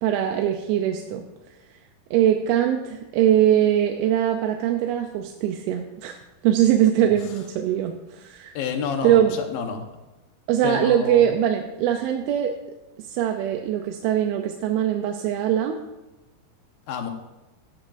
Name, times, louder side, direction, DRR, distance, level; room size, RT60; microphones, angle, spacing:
voice 1, 0.0-1.3 2.1-6.2 6.4-8.5 9.0-9.4 10.5-12.5 13.1-15.8, right 10 dB, 80° right, 4 dB, 2.5 m, -22 dB
voice 2, 8.5-9.8 10.6-11.2 16.9-17.1, left 6 dB, 70° left, 4 dB, 2.8 m, -29 dB
17.0 x 12.5 x 2.6 m, 1.1 s
omnidirectional pair, 4.7 m